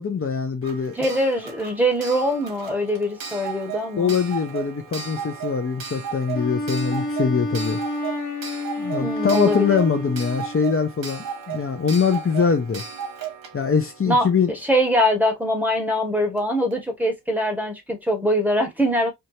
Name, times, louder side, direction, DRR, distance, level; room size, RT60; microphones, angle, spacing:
voice 1, 0.0-1.0 4.0-7.8 8.8-12.8 13.5-14.5, left 6 dB, 40° left, 0.7 m, -23 dB
Clock, 0.6-15.2 16.4-16.5 16.7-16.8, right 7 dB, 85° right, 1.3 m, -36 dB
voice 2, 0.9-4.1 9.0-9.8 14.1-19.1, equal, 5° right, 1.7 m, -23 dB
Wind instrument woodwind instrument, 6.3-10.7, left 1 dB, 60° left, 1.4 m, -29 dB
4.6 x 2.7 x 2.8 m
cardioid pair, 80°, 35 cm